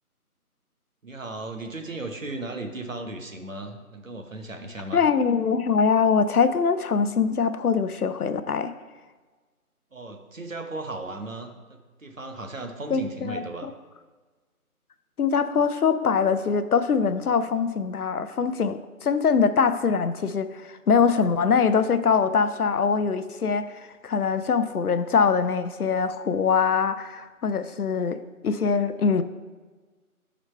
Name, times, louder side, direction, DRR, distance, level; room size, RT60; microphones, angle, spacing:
voice 1, 1.0-5.0 9.9-13.7, right 2 dB, 60° right, 5 dB, 0.9 m, -36 dB
voice 2, 4.9-8.7 12.9-13.7 15.2-23.7 24.0-29.2, left 6 dB, 80° left, 12 dB, 0.6 m, -23 dB
6.2 x 4.0 x 5.5 m, 1.3 s
figure-of-eight pair, 180°, 45 cm